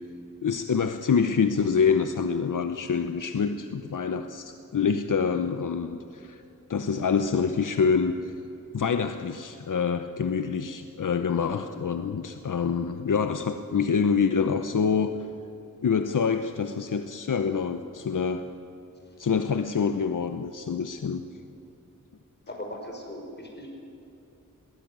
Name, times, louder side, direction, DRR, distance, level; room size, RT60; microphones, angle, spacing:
voice 1, 0.4-6.4 6.7-8.3 8.7-15.2 15.8-18.4 19.2-21.2, left 6 dB, 70° left, 8 dB, 0.9 m, -26 dB
voice 2, 22.5-23.8, left 1 dB, 30° left, 1 dB, 5.7 m, -39 dB
21.0 x 18.5 x 9.4 m, 2.8 s
wide cardioid pair, 90°, 32 cm